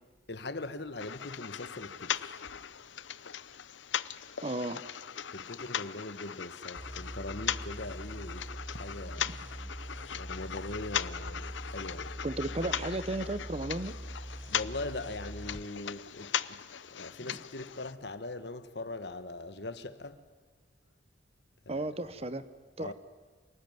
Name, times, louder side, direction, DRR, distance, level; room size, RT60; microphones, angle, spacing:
voice 1, 0.3-2.5 5.3-9.3 10.1-12.2 14.5-16.6 16.9-20.2 21.7-21.9 22.8-22.9, left 2 dB, 65° left, 1.3 m, -41 dB
sound 1, 1.0-17.9, left 9 dB, 85° left, 0.7 m, -39 dB
voice 2, 4.4-4.8 12.2-13.9 21.7-22.4 22.8-22.9, right 2 dB, 35° right, 0.9 m, -34 dB
sound 2, 6.8-15.7, right 1 dB, 10° right, 1.0 m, -43 dB
28.0 x 19.0 x 9.4 m
head